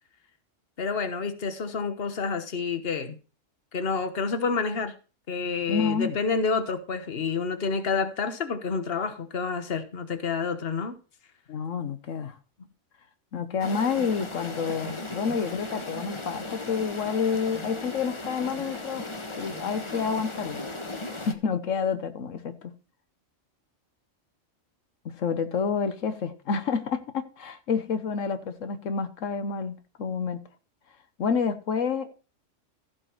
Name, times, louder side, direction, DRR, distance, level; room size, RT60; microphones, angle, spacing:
voice 1, 0.8-3.2 3.7-4.9 5.3-11.0, left 5 dB, 50° left, 1.4 m, -29 dB
voice 2, 5.7-6.2 11.5-12.4 13.3-19.0 19.4-20.6 21.1-22.7 25.0-30.4 31.2-32.1, left 6 dB, 85° left, 1.3 m, -29 dB
sound 1, 13.6-21.3, left 2 dB, 25° left, 1.2 m, -37 dB
15.0 x 5.3 x 4.5 m
omnidirectional pair, 1.3 m